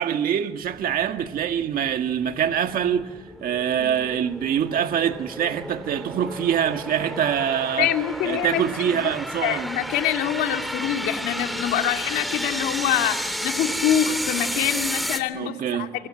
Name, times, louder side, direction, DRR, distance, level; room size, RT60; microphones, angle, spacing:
voice 1, 0.0-7.9 8.2-9.7 15.3-15.9, right 9 dB, 60° right, 1.7 m, -24 dB
sound 1, 0.7-15.2, equal, ahead, 3.0 m, -32 dB
voice 2, 7.8-8.6 8.9-9.1 9.4-16.1, left 10 dB, 90° left, 2.6 m, -25 dB
25.0 x 25.0 x 8.8 m
cardioid pair, 110°, 17 cm